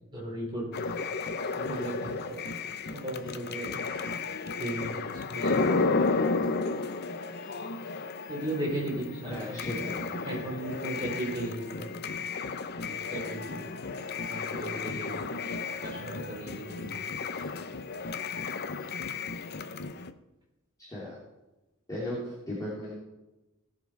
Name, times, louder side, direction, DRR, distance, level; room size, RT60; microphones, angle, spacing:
voice 1, 0.1-0.6 1.6-2.4 2.9-3.8 4.6-5.7 8.3-9.7 10.2-11.9 12.8-13.7 14.3-15.1 15.8-17.0, right 1 dB, 20° right, -3 dB, 4.2 m, -36 dB
sound 1, 0.7-20.1, left 4 dB, 50° left, 0.7 m, -33 dB
voice 2, 9.3-10.0 20.8-21.2 21.9-23.0, left 1 dB, 15° left, -9 dB, 3.0 m, -36 dB
18.0 x 6.7 x 4.6 m, 1.0 s
head